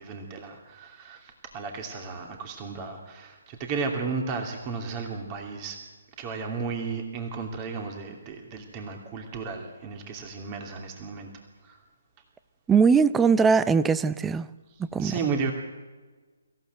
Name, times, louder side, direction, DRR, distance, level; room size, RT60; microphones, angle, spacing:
voice 1, 0.0-5.8 6.2-11.3 11.6-11.8 15.0-15.5, right 4 dB, 25° right, 2.8 m, -34 dB
voice 2, 12.7-14.5 14.9-15.1, right 5 dB, 10° right, 0.6 m, -20 dB
24.5 x 15.0 x 7.9 m
figure-of-eight pair, 145°, 0 cm